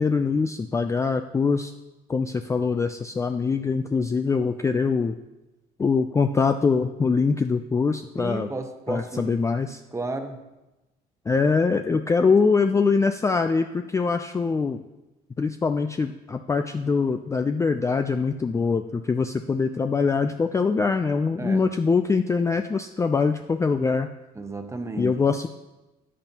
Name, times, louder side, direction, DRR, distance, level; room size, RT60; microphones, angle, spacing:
voice 1, 0.0-1.7 2.1-5.1 5.8-8.5 8.9-9.8 11.3-14.8 15.4-24.1 25.0-25.5, left 4 dB, 15° left, 7 dB, 0.4 m, -23 dB
voice 2, 8.2-9.4 9.9-10.4 21.4-21.7 24.3-25.1, right 3 dB, 15° right, 6 dB, 1.0 m, -32 dB
13.5 x 8.8 x 2.9 m, 1.0 s
cardioid pair, 110°, 17 cm